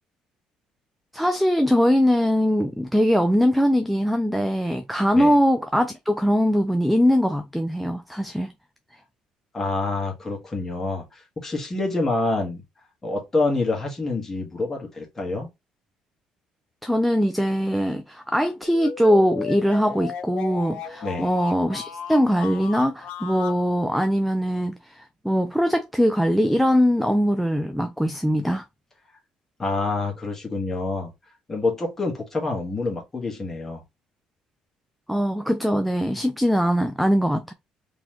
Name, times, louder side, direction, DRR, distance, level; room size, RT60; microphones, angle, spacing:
voice 1, 1.1-8.5 16.8-28.6 35.1-37.5, equal, ahead, 0.3 m, -21 dB
voice 2, 9.5-12.6 13.0-15.5 21.0-21.3 29.6-31.1 31.5-33.8, left 2 dB, 15° left, 1.4 m, -27 dB
sound 1, 18.6-23.6, left 7 dB, 65° left, 0.9 m, -36 dB
3.8 x 3.0 x 3.0 m
cardioid pair, 165°, 2 cm